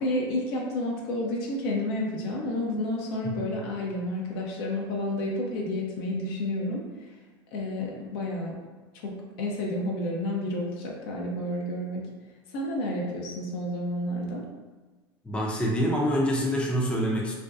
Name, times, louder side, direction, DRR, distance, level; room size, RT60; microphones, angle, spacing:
voice 1, 0.0-6.8 7.5-8.6 9.0-12.0 12.5-14.4, left 1 dB, 60° left, -1 dB, 0.6 m, -30 dB
voice 2, 3.2-3.6 15.2-17.3, equal, 10° left, -3 dB, 0.5 m, -26 dB
2.5 x 2.2 x 2.4 m, 1.3 s
hypercardioid pair, 85°, 14 cm